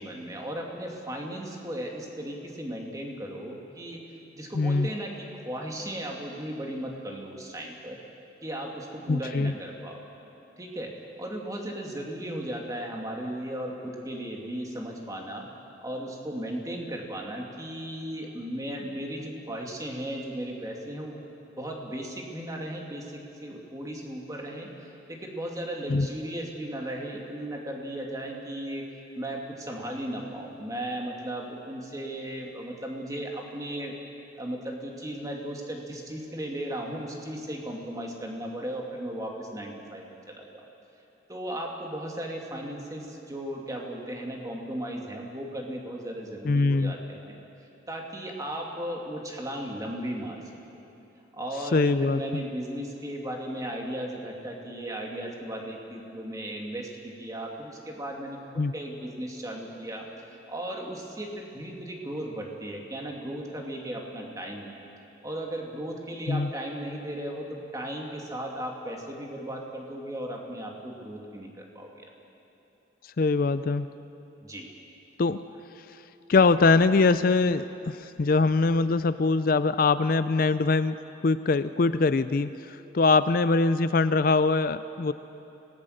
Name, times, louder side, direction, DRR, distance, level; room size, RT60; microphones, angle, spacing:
voice 1, 0.0-4.0 4.3-8.0 8.4-10.0 10.6-10.9 11.2-15.5 15.8-21.2 21.6-28.9 29.2-34.0 34.4-40.7 41.3-47.4 47.9-50.4 51.3-58.4 58.7-64.8 65.2-72.1 74.4-74.7, right 1 dB, 20° right, 0 dB, 2.4 m, -36 dB
voice 2, 4.5-4.9 9.1-9.5 25.9-26.1 46.4-46.9 51.7-52.4 58.6-58.7 66.3-66.5 73.2-73.9 75.2-75.4 76.3-81.0 81.2-85.1, left 3 dB, 50° left, 13 dB, 0.5 m, -23 dB
25.0 x 18.0 x 6.6 m, 3.0 s
head